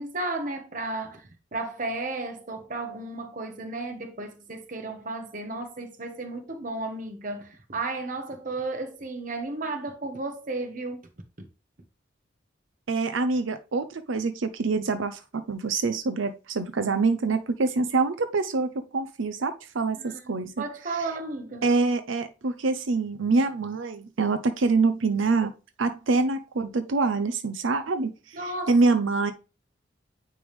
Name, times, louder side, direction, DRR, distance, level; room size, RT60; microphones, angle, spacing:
voice 1, 0.0-11.0 11.4-11.5 19.9-21.7 28.3-28.7, right 2 dB, 45° right, 1.2 m, -34 dB
voice 2, 12.9-20.6 21.6-25.5 25.8-29.3, right 3 dB, 90° right, 0.6 m, -25 dB
9.3 x 3.4 x 3.3 m
head